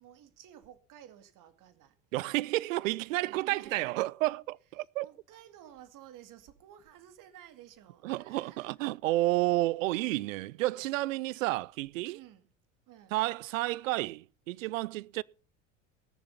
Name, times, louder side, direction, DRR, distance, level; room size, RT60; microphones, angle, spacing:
voice 1, 0.0-2.0 3.2-4.0 5.0-8.7 12.1-12.5 12.9-13.2, right 11 dB, 55° right, 2.2 m, -53 dB
voice 2, 2.1-5.1 8.0-12.2 13.1-15.2, right 18 dB, 85° right, 0.5 m, -31 dB
17.5 x 7.0 x 5.6 m
hypercardioid pair, 80°, 38 cm